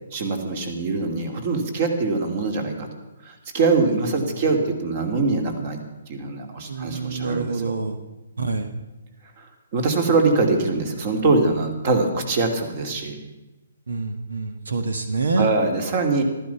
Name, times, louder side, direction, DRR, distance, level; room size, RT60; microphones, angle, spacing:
voice 1, 0.1-2.9 3.2-5.8 6.1-7.7 9.4-13.2 15.4-16.2, right 3 dB, 40° right, 5 dB, 2.6 m, -23 dB
voice 2, 6.7-8.0 8.4-8.7 13.9-15.5, right 3 dB, 90° right, 8 dB, 1.4 m, -26 dB
14.5 x 13.0 x 5.8 m, 1.1 s
hypercardioid pair, 155°, 0 cm